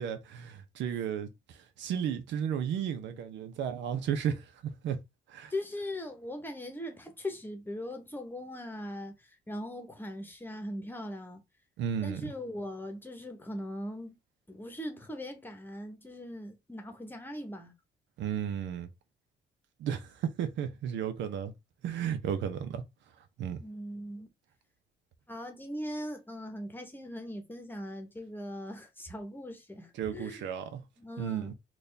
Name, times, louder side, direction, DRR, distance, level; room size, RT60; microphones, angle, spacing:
voice 1, 0.0-5.0 5.3-5.5 11.8-12.3 18.2-18.9 19.8-21.5 21.8-22.8 23.4-23.6 30.0-30.8 31.2-31.5, right 8 dB, 85° right, 0.8 m, -34 dB
voice 2, 5.5-9.1 9.5-11.4 12.0-14.2 14.5-17.7 23.6-24.3 25.3-30.4 31.0-31.5, left 1 dB, 10° left, 1.1 m, -40 dB
4.1 x 2.5 x 3.4 m
cardioid pair, 105°, 18 cm